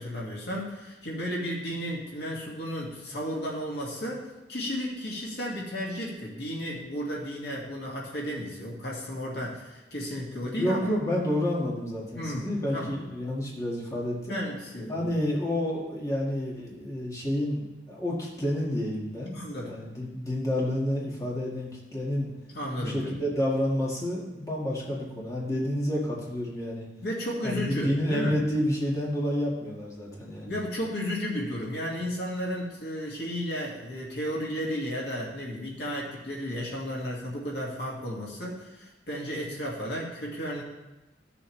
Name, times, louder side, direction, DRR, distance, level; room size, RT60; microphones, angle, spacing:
voice 1, 0.0-10.8 12.1-12.5 12.7-13.0 14.3-15.2 19.3-19.7 22.5-23.1 27.0-28.4 30.4-40.6, equal, 65° left, -3 dB, 2.1 m, -33 dB
voice 2, 10.6-14.4 14.9-22.3 22.8-26.9 27.4-30.5, left 1 dB, 20° left, -5 dB, 1.8 m, -29 dB
14.5 x 7.0 x 3.3 m, 1.0 s
head